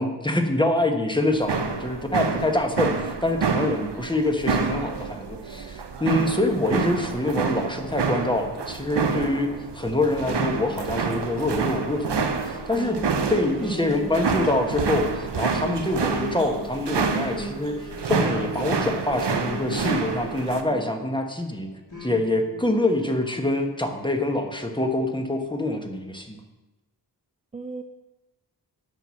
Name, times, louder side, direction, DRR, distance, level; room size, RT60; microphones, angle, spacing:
voice 1, 0.0-9.5 9.7-13.0 13.3-21.7 22.0-26.4, left 1 dB, 10° left, 4 dB, 1.3 m, -25 dB
sound 1, 1.3-20.6, right 5 dB, 70° right, 0.9 m, -28 dB
sound 2, 10.2-21.3 21.9-23.4, left 1 dB, 45° left, 3.1 m, -39 dB
voice 2, 13.2-14.2 27.5-27.8, right 3 dB, 20° right, 8 dB, 0.4 m, -37 dB
9.0 x 6.1 x 6.3 m, 1.1 s
wide cardioid pair, 75°, 42 cm